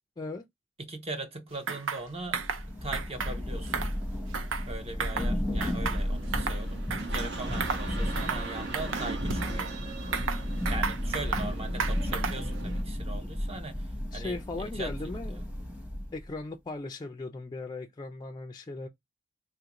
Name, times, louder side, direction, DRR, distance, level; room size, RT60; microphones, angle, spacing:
voice 1, 0.8-2.4 2.8-3.8 4.7-9.7 10.7-14.9 15.3-15.4, right 2 dB, 30° right, 0.6 m, -40 dB
sound 1, 1.7-2.0 2.3-2.6 2.9-3.3 3.7-4.7 5.0-5.3 5.6-6.6 6.9-7.3 7.6-7.9 8.2-8.5 8.7-9.7 10.1-11.5 11.8-12.5, right 5 dB, 80° right, 0.5 m, -33 dB
Thunder / Rain, 2.2-16.3, equal, 10° right, 0.9 m, -33 dB
voice 2, 5.1-5.4 14.1-15.4 16.1-18.9, left 3 dB, 20° left, 0.3 m, -38 dB
sound 2, 5.9-12.8, right 3 dB, 60° right, 0.9 m, -40 dB
3.4 x 2.4 x 2.9 m
head